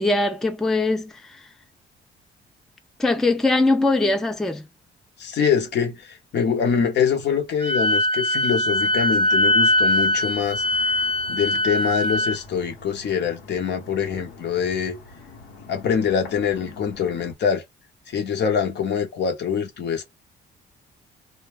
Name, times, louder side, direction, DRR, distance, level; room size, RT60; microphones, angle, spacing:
voice 1, 0.0-1.4 3.0-4.6, left 2 dB, ahead, 0.4 m, -21 dB
voice 2, 5.2-11.0 11.3-15.0 15.7-17.6 18.1-20.0, left 7 dB, 60° left, 0.8 m, -24 dB
Wind instrument woodwind instrument, 7.6-12.4, left 1 dB, 25° left, 0.8 m, -21 dB
sound 1, 8.7-17.3, left 3 dB, 80° left, 1.0 m, -45 dB
2.2 x 2.1 x 3.3 m
cardioid pair, 90°, 20 cm